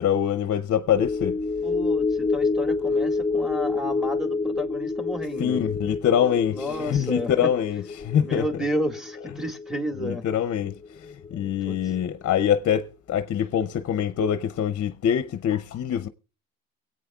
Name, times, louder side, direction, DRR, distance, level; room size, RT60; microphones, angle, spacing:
voice 1, 0.0-1.5 5.4-8.4 10.0-16.1, left 9 dB, 55° left, 0.6 m, -24 dB
sound 1, 0.9-11.5 11.8-12.0, left 3 dB, 15° left, 0.6 m, -28 dB
voice 2, 1.6-5.6 6.5-7.5 8.2-10.3 11.3-11.9, equal, ahead, 1.8 m, -31 dB
23.0 x 8.5 x 2.3 m
cardioid pair, 90°, 30 cm